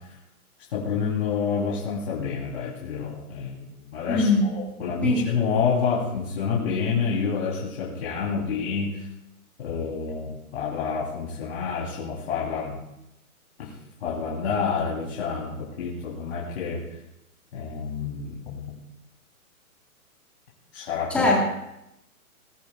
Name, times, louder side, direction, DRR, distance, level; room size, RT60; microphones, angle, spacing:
voice 1, 0.7-9.1 9.6-12.8 13.6-13.7 14.0-16.8 17.5-18.7 20.7-21.3, left 6 dB, 45° left, -6 dB, 3.8 m, -28 dB
voice 2, 4.1-4.5 4.8-5.3 21.1-21.4, left 2 dB, 5° left, -3 dB, 1.6 m, -22 dB
21.0 x 10.0 x 2.5 m, 0.87 s
hypercardioid pair, 165°, 44 cm